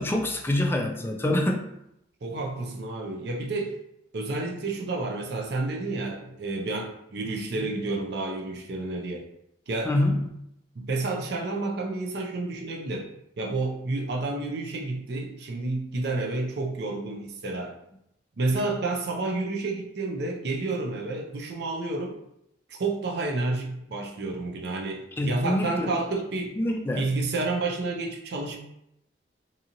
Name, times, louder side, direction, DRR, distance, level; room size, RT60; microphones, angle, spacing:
voice 1, 0.0-1.7 7.6-7.7 9.9-10.3 25.2-25.9 26.6-27.1, left 1 dB, 15° left, 2 dB, 0.3 m, -26 dB
voice 2, 2.2-3.7 4.1-9.3 9.7-9.9 10.8-13.1 13.4-17.7 18.4-22.2 22.7-26.6 27.0-28.6, right 2 dB, 65° right, 1 dB, 0.5 m, -30 dB
2.8 x 2.7 x 2.5 m, 0.79 s
head